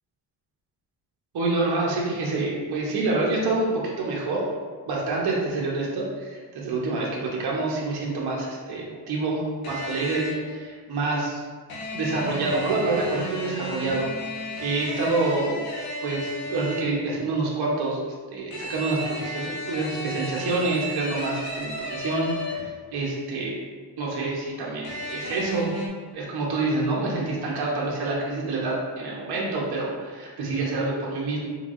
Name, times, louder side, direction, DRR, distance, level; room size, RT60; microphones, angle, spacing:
voice 1, 1.3-4.4 4.9-11.4 11.9-14.1 14.6-15.6 16.0-18.0 18.3-23.5 24.0-25.7 26.1-31.4, right 2 dB, 60° right, -4 dB, 1.0 m, -27 dB
sound 1, 9.6-10.5 11.7-17.0 18.5-22.8 24.8-25.9, equal, 55° left, 1.2 m, -34 dB
4.5 x 3.7 x 2.5 m, 1.5 s
cardioid pair, 105°, 43 cm